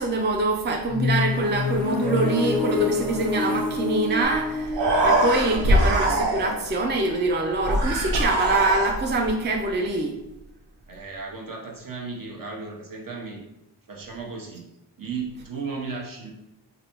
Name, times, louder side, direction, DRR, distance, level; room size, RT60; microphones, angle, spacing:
voice 1, 0.0-10.2, right 2 dB, 25° right, 1 dB, 0.4 m, -24 dB
sound 1, 0.9-6.7, left 4 dB, ahead, 0.7 m, -27 dB
Human voice, 4.3-4.4 4.6-6.7 7.6-9.3, right 1 dB, 80° right, 0.7 m, -22 dB
voice 2, 5.5-6.3 10.9-13.4 13.9-14.7 15.0-16.3, right 4 dB, 50° right, -1 dB, 0.9 m, -35 dB
3.2 x 2.5 x 2.9 m, 0.94 s
cardioid pair, 50°, 43 cm